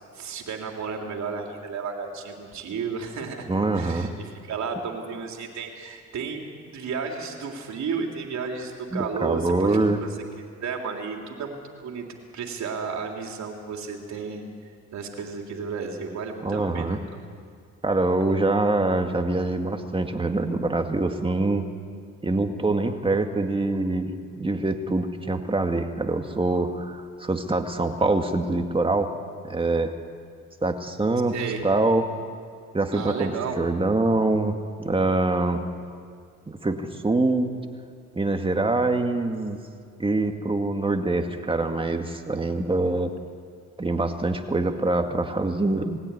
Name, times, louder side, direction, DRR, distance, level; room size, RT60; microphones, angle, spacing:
voice 1, 0.1-3.5 3.7-10.1 10.6-12.0 12.3-14.5 14.9-17.0 31.3-31.7 32.9-33.7, right 5 dB, 65° right, 2 dB, 3.4 m, -33 dB
voice 2, 3.5-4.1 8.9-10.0 16.4-17.0 17.8-21.7 22.2-29.1 29.4-29.9 30.6-31.3 31.6-32.1 32.7-35.6 36.5-37.5 38.2-39.6 40.0-43.1 43.8-46.0, right 2 dB, 20° right, 5 dB, 2.0 m, -24 dB
20.5 x 16.5 x 9.9 m, 2.2 s
cardioid pair, 90°, 30 cm